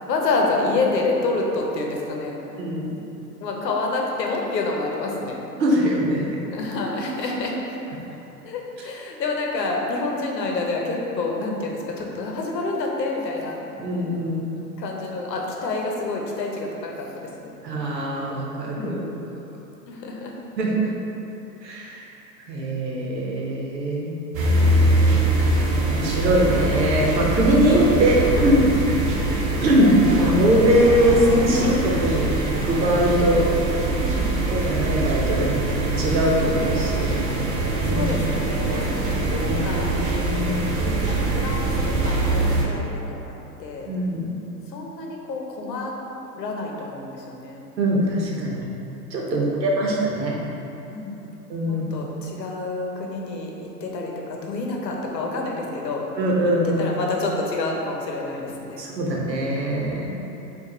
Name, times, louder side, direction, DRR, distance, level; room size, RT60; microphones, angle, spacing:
voice 1, 0.1-2.3 3.4-5.4 6.5-7.5 8.4-13.6 14.8-17.5 18.8-19.3 19.9-20.3 29.1-29.4 33.9-34.5 37.9-40.0 40.8-43.3 43.6-43.9 44.7-45.9 46.3-47.6 49.3-49.6 50.9-51.4 51.7-53.5 53.8-56.1 56.6-58.8 60.0-60.2, left 3 dB, 80° left, 0 dB, 0.9 m, -28 dB
voice 2, 2.6-2.9 5.6-6.4 13.8-14.4 17.6-19.1 20.6-20.7 21.6-22.0 22.5-24.1 25.9-28.7 29.6-33.5 34.5-37.1 37.8-38.1 39.3-40.5 43.9-44.2 47.8-48.7 49.1-50.4 51.5-52.1 56.2-56.9 58.8-60.1, equal, 85° right, -3 dB, 1.0 m, -22 dB
sound 1, 24.3-42.6, right 2 dB, 55° right, 0.9 m, -23 dB
4.6 x 2.5 x 3.8 m, 2.9 s
hypercardioid pair, 110°, 49 cm